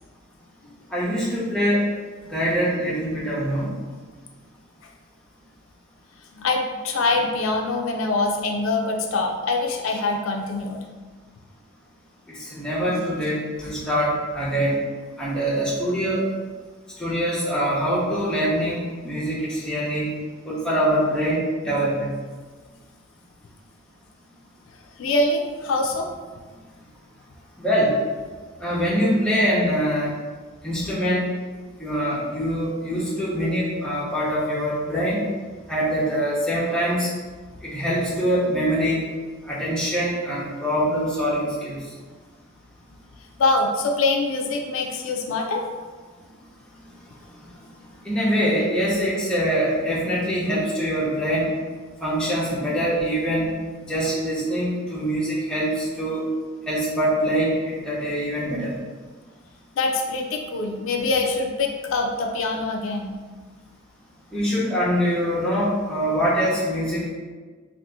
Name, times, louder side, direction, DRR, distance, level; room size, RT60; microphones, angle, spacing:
voice 1, 0.9-1.8 2.3-3.7 12.4-14.8 15.2-16.2 17.0-20.1 20.4-22.1 27.6-27.9 28.6-30.1 30.6-31.3 31.8-35.2 35.7-37.1 37.6-39.0 39.5-41.8 48.0-51.5 52.0-53.5 53.9-56.2 56.7-58.7 64.3-67.1, equal, 5° left, -8 dB, 0.7 m, -24 dB
voice 2, 6.3-10.8 12.8-13.1 25.0-26.1 43.4-45.6 59.8-63.1, left 3 dB, 75° left, 2 dB, 0.4 m, -24 dB
2.7 x 2.4 x 3.5 m, 1.4 s
head